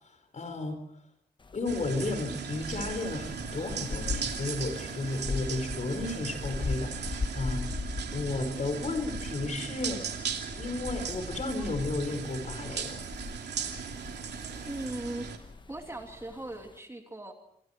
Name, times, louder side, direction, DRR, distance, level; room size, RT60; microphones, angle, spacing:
voice 1, 0.3-0.8 1.5-7.7 8.1-10.0 10.6-13.0, left 2 dB, 45° left, 7 dB, 4.9 m, -33 dB
sound 1, 1.4-16.8, left 3 dB, 30° left, 1.1 m, -40 dB
sound 2, 1.7-15.4, right 7 dB, 90° right, 2.8 m, -38 dB
voice 2, 14.6-15.3 15.7-17.3, right 1 dB, 15° right, 3 dB, 2.8 m, -38 dB
28.0 x 25.0 x 4.6 m, 0.72 s
wide cardioid pair, 125°, 17 cm